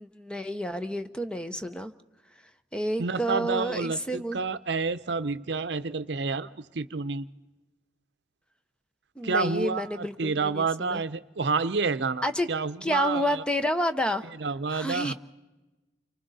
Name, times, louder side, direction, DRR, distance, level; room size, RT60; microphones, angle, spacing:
voice 1, 0.0-1.9 2.7-4.4 9.2-11.0 12.2-12.5 12.8-14.3 14.7-15.1, equal, 5° left, 9 dB, 0.7 m, -29 dB
voice 2, 3.0-7.3 9.2-13.4 14.4-15.1, right 4 dB, 70° right, 13 dB, 0.7 m, -29 dB
29.0 x 25.0 x 4.1 m, 1.1 s
head